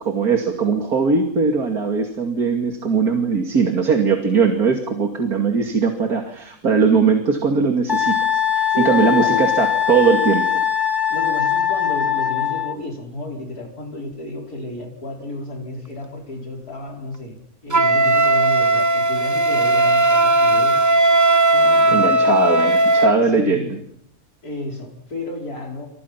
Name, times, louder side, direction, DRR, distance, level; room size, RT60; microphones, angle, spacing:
voice 1, 0.0-8.2 8.5-10.5 21.9-23.8, right 5 dB, 80° right, 4 dB, 3.0 m, -19 dB
Wind instrument woodwind instrument, 7.9-12.8, left 9 dB, 15° left, 2.1 m, -21 dB
voice 2, 8.7-9.5 11.1-17.4 17.6-20.8 21.5-22.1 23.3-23.8 24.4-25.9, left 2 dB, 90° left, 1 dB, 5.3 m, -32 dB
Wind instrument woodwind instrument 2, 17.7-23.2, right 2 dB, 15° right, 0.8 m, -16 dB
29.0 x 26.5 x 5.9 m, 0.66 s
omnidirectional pair, 1.6 m